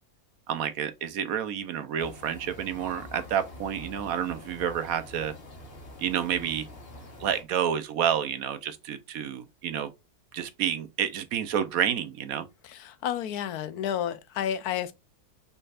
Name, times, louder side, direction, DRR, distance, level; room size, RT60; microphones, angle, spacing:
voice 1, 0.5-5.3 6.0-6.7 7.2-9.9 10.3-12.5, right 9 dB, 75° right, 1.1 m, -29 dB
sound 1, 2.0-7.4, left 1 dB, 40° left, 1.3 m, -45 dB
voice 2, 12.6-14.9, left 10 dB, 85° left, 1.2 m, -31 dB
5.5 x 4.0 x 2.4 m
omnidirectional pair, 1.6 m